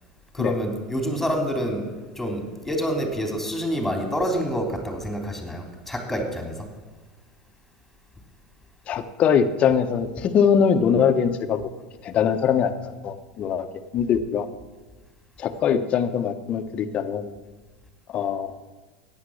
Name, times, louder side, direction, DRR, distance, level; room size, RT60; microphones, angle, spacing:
voice 1, 0.3-1.9 2.1-6.6, equal, 5° left, 3 dB, 3.2 m, -27 dB
voice 2, 8.9-11.6 12.0-14.5 15.4-17.3 18.1-18.5, left 7 dB, 45° left, 9 dB, 1.2 m, -22 dB
14.5 x 9.6 x 6.5 m, 1.3 s
hypercardioid pair, 95°, 3 cm